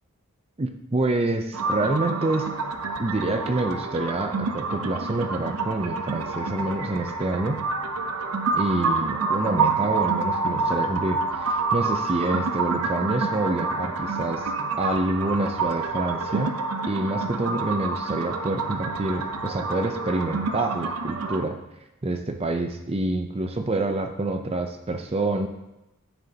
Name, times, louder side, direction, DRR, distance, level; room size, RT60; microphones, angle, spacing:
voice 1, 0.6-2.6 3.0-7.6 8.5-14.5 14.8-16.6 16.9-21.6 22.0-25.5, right 2 dB, 25° right, 5 dB, 0.5 m, -27 dB
sound 1, 1.5-21.4, right 4 dB, 75° right, 0.7 m, -28 dB
13.0 x 6.6 x 2.8 m, 0.93 s
head